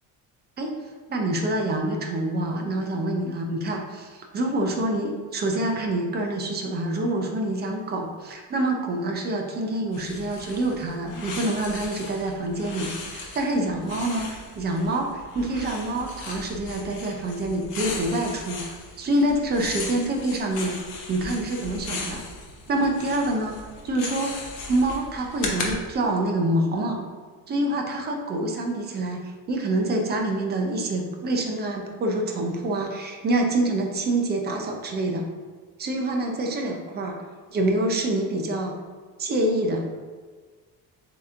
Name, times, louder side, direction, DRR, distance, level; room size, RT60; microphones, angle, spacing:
voice 1, 1.1-20.7 21.1-22.2 22.7-23.6 23.8-27.0 27.5-35.2 35.8-37.2 37.5-38.7 39.2-39.9, right 1 dB, 30° right, 2 dB, 0.5 m, -26 dB
sound 1, 9.9-25.7, left 3 dB, 55° left, 0.8 m, -37 dB
7.4 x 2.9 x 2.5 m, 1.5 s
cardioid pair, 175°, 35 cm